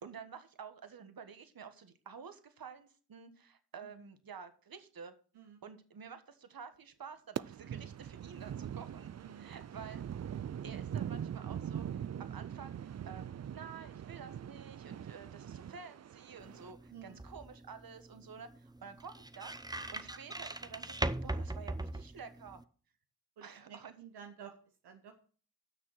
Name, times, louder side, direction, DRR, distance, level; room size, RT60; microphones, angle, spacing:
voice 1, 0.0-5.1 5.6-9.1 9.4-10.0 10.6-19.5 19.9-22.6 23.4-23.9, right 6 dB, 65° right, 10 dB, 1.5 m, -50 dB
sound 1, 7.4-16.7, right 9 dB, 45° right, 0.5 m, -42 dB
voice 2, 9.2-9.5 16.9-17.2 23.4-24.5 24.8-25.2, right 8 dB, 90° right, 4 dB, 1.1 m, -52 dB
sound 2, 16.4-22.6, right 2 dB, 10° right, 0.8 m, -41 dB
9.9 x 6.3 x 6.3 m, 0.41 s
supercardioid pair, 40°, 39 cm